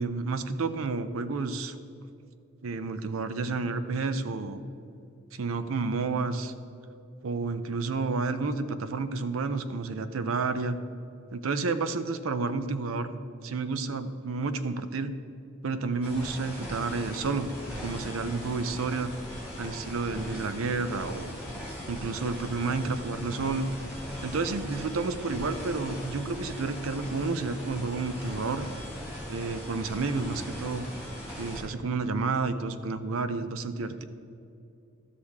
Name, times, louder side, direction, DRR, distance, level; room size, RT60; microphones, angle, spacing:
voice 1, 0.0-1.8 2.6-4.6 5.3-6.5 7.2-10.8 11.3-13.1 13.4-15.1 15.6-17.5 17.8-19.1 19.6-21.3 21.9-23.7 24.2-28.7 29.3-30.9 31.4-34.0, right 4 dB, 90° right, 11 dB, 0.5 m, -30 dB
sound 1, 16.0-31.6, equal, 5° right, 2.2 m, -39 dB
13.0 x 6.4 x 3.6 m, 2.6 s
head